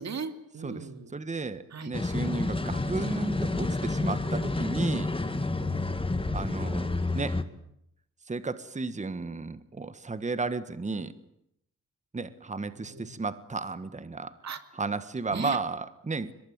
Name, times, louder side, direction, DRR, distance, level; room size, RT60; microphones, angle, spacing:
voice 1, 0.0-1.1 1.7-1.9 5.6-6.1 12.7-13.2 14.4-14.6 15.3-15.6, right 5 dB, 55° right, 9 dB, 2.7 m, -38 dB
voice 2, 1.1-5.1 6.3-7.4 8.3-11.1 12.1-14.3 14.8-16.3, right 3 dB, 20° right, 13 dB, 1.5 m, -33 dB
sound 1, 1.9-7.4, left 2 dB, 15° left, 1.9 m, -29 dB
23.0 x 21.5 x 9.5 m, 0.78 s
cardioid pair, 90°, 32 cm